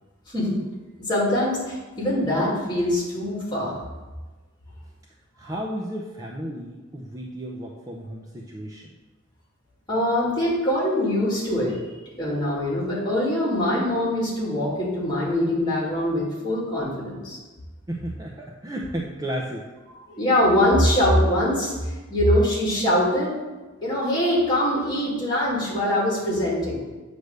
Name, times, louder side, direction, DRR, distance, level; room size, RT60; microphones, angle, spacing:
voice 1, 1.1-3.8 9.9-11.8 12.1-17.4 20.1-21.7 22.1-23.3 23.8-26.8, left 1 dB, 20° left, -5 dB, 2.3 m, -23 dB
voice 2, 5.4-8.9 17.9-19.6, right 1 dB, 15° right, -2 dB, 0.6 m, -33 dB
7.8 x 3.4 x 6.5 m, 1.2 s
head